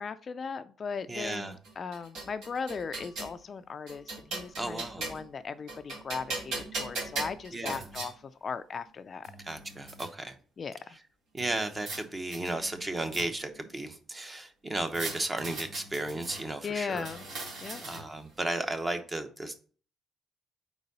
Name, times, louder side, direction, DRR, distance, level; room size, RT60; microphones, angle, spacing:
voice 1, 0.0-9.3 10.6-11.0 16.6-17.2 17.6-17.8, left 5 dB, 40° left, 11 dB, 0.3 m, -38 dB
voice 2, 1.1-1.6 4.6-5.0 7.5-7.9 9.4-10.4 10.9-11.0 11.3-17.1 17.5-19.7, right 2 dB, 20° right, 7 dB, 0.8 m, -34 dB
sound 1, 1.6-3.4 3.9-5.3 5.7-8.1 8.9-9.0 9.2-10.1 11.4-12.0 12.3-13.6 14.9-16.4 16.9-18.2, right 2 dB, 80° right, 2.6 m, -39 dB
4.6 x 4.0 x 5.2 m, 0.42 s
cardioid pair, 105°, 0 cm